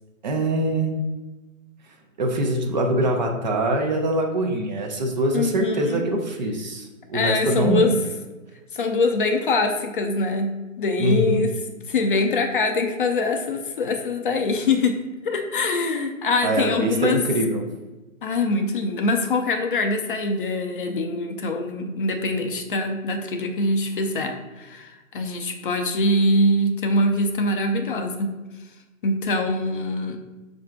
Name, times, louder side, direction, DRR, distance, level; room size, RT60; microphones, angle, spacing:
voice 1, 0.2-1.0 2.2-8.0 11.0-11.5 16.4-17.6, right 1 dB, 35° right, 2 dB, 0.5 m, -23 dB
voice 2, 5.3-6.0 7.1-7.9 8.7-11.5 11.9-15.0 15.2-17.2 18.2-28.3 29.0-30.2, left 2 dB, 40° left, 4 dB, 0.5 m, -23 dB
4.7 x 2.6 x 4.3 m, 1.1 s
hypercardioid pair, 145°, 40 cm